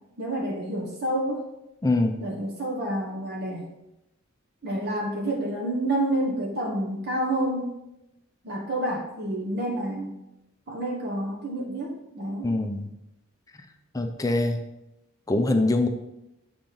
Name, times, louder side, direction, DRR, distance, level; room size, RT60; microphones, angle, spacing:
voice 1, 0.2-1.5 2.2-3.7 4.6-7.7 8.4-10.1 10.7-12.5, right 1 dB, 50° right, -2 dB, 1.0 m, -29 dB
voice 2, 1.8-2.2 12.4-12.9 13.9-14.6 15.3-15.9, left 2 dB, 15° left, 6 dB, 0.4 m, -23 dB
7.4 x 3.9 x 3.8 m, 0.90 s
head